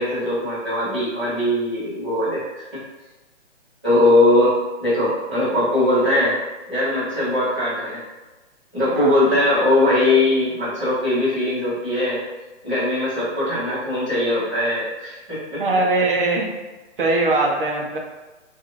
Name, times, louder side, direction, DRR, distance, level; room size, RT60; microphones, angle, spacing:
voice 1, 0.0-2.4 2.7-2.8 3.8-4.5 4.8-6.3 6.7-8.0 8.7-12.2 12.6-15.6, left 1 dB, 5° right, -18 dB, 0.6 m, -20 dB
voice 2, 15.6-16.5 17.0-18.0, right 2 dB, 45° right, -1 dB, 0.6 m, -20 dB
2.5 x 2.4 x 2.9 m, 1.2 s
hypercardioid pair, 175°, 36 cm